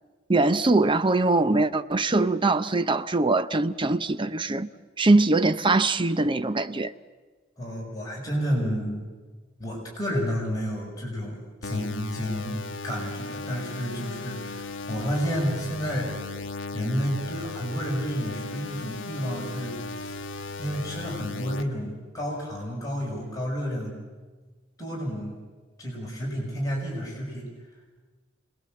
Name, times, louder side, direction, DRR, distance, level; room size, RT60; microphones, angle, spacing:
voice 1, 0.3-4.7 5.0-6.9, right 2 dB, 25° right, 0.7 m, -22 dB
voice 2, 7.6-9.0 9.6-12.6 12.8-16.1 16.7-20.2 20.6-24.0 24.8-25.4 25.8-27.5, equal, 20° left, 6.0 m, -30 dB
sound 1, 11.6-21.6, left 4 dB, 70° left, 1.1 m, -37 dB
28.0 x 20.0 x 7.7 m
head